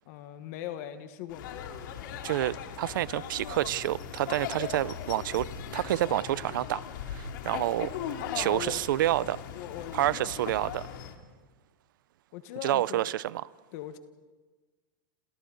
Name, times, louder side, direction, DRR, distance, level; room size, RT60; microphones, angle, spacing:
voice 1, 0.0-1.6 8.2-8.8 9.5-10.4 12.3-13.1 13.7-14.0, left 12 dB, 50° left, 1.4 m, -39 dB
sound 1, 1.3-11.1, left 8 dB, 70° left, 2.6 m, -39 dB
voice 2, 2.2-7.9 8.4-9.4 9.9-10.9 12.6-13.4, right 14 dB, 75° right, 0.6 m, -29 dB
28.5 x 28.0 x 4.0 m
supercardioid pair, 150°, 11 cm